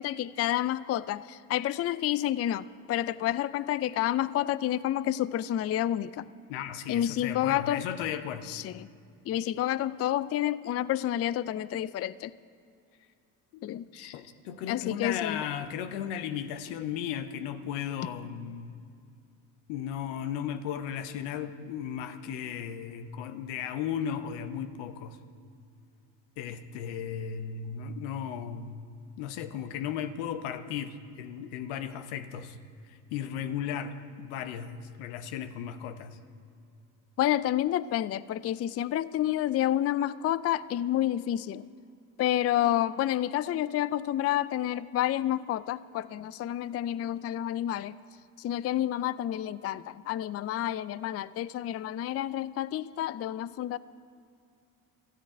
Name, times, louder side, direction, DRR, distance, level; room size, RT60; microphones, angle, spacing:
voice 1, 0.0-6.3 6.9-7.8 8.5-8.9 9.3-12.3 13.6-13.8 14.7-15.4 37.2-41.6 42.2-48.0 48.4-53.8, left 12 dB, 35° left, 17 dB, 0.4 m, -29 dB
voice 2, 6.5-8.5 13.5-18.8 19.7-25.2 26.4-28.8 29.2-32.6 32.9-36.2, left 8 dB, 80° left, 10 dB, 0.9 m, -36 dB
13.5 x 9.3 x 8.9 m, 2.4 s
hypercardioid pair, 60°, 42 cm